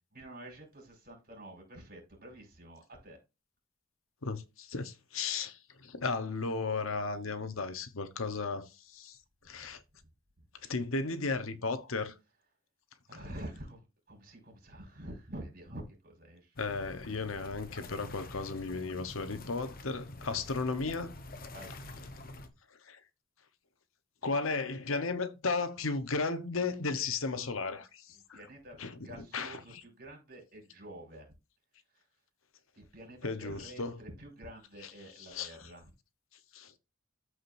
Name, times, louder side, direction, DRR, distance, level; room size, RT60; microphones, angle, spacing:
voice 1, 0.1-3.2 13.1-16.5 21.5-21.8 28.3-28.8 29.0-31.3 32.7-35.8, right 1 dB, 45° right, 5.1 m, -48 dB
voice 2, 4.2-9.2 9.5-9.8 10.6-12.1 13.1-13.2 16.6-21.1 22.9-23.0 24.2-28.4 28.8-29.8 33.2-34.0 35.2-35.6 36.5-36.7, left 4 dB, 75° left, 1.0 m, -35 dB
sound 1, 16.6-22.5, left 2 dB, 45° left, 1.1 m, -47 dB
14.0 x 4.9 x 2.6 m
head